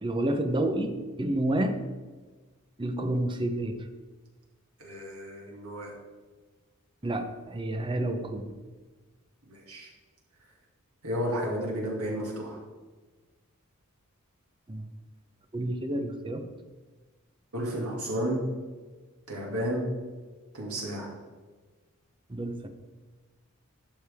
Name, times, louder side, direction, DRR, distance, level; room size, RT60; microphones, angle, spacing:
voice 1, 0.0-1.8 2.8-3.9 7.0-8.5 14.7-14.9 15.5-16.4 22.3-22.7, right 1 dB, 20° right, 7 dB, 0.7 m, -29 dB
voice 2, 4.8-5.9 9.5-9.9 11.0-12.6 17.5-18.4 19.3-19.9 20.5-21.1, equal, 90° right, -2 dB, 2.4 m, -32 dB
11.5 x 6.4 x 3.5 m, 1.3 s
head